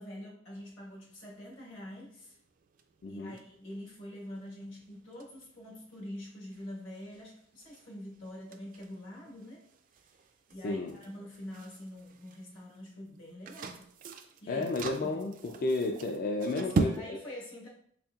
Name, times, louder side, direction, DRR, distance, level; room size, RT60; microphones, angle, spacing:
voice 1, 0.0-2.4 3.1-9.7 10.5-13.8 14.4-14.6 15.0-15.2 16.6-17.7, left 1 dB, 75° left, -4 dB, 1.4 m, -45 dB
sound 1, 0.6-17.0, right 3 dB, 45° right, 0.3 m, -41 dB
voice 2, 3.0-3.3 10.6-11.0 14.5-17.2, left 2 dB, 45° left, 2 dB, 0.3 m, -32 dB
4.1 x 3.6 x 2.3 m, 0.64 s
head